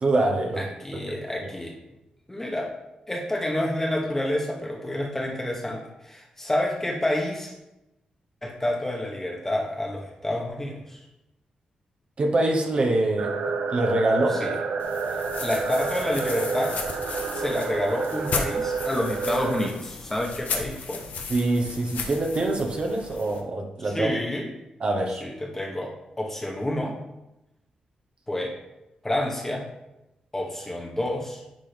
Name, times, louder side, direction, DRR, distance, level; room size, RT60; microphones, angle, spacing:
voice 1, 0.0-0.6 12.2-14.4 21.3-24.1 24.8-25.2, right 2 dB, 45° right, 2 dB, 0.9 m, -24 dB
voice 2, 0.6-1.8 2.3-2.7 3.1-7.5 8.4-11.0 14.3-14.6 15.1-16.8 17.3-21.0 23.8-24.5 25.2-27.0 28.3-28.6 29.0-29.7 30.3-31.4, left 1 dB, 15° left, 0 dB, 1.2 m, -29 dB
sound 1, 13.2-19.7, right 4 dB, 90° right, 0.6 m, -29 dB
sound 2, 14.8-23.4, left 5 dB, 80° left, 0.8 m, -35 dB
10.5 x 3.7 x 3.4 m, 0.93 s
cardioid pair, 95°, 3 cm